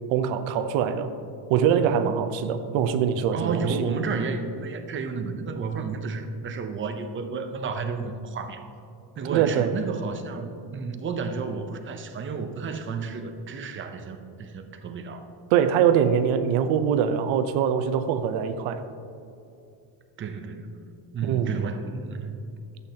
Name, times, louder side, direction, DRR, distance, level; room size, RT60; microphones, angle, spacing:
voice 1, 0.1-1.1 1.5-3.8 9.3-9.7 15.5-18.8 21.2-21.7, right 8 dB, 80° right, 10 dB, 0.8 m, -23 dB
voice 2, 3.3-8.6 9.2-15.3 20.2-20.8 21.1-22.3, right 5 dB, 25° right, 7 dB, 0.6 m, -32 dB
12.0 x 8.2 x 2.8 m, 2.6 s
cardioid pair, 155°, 45 cm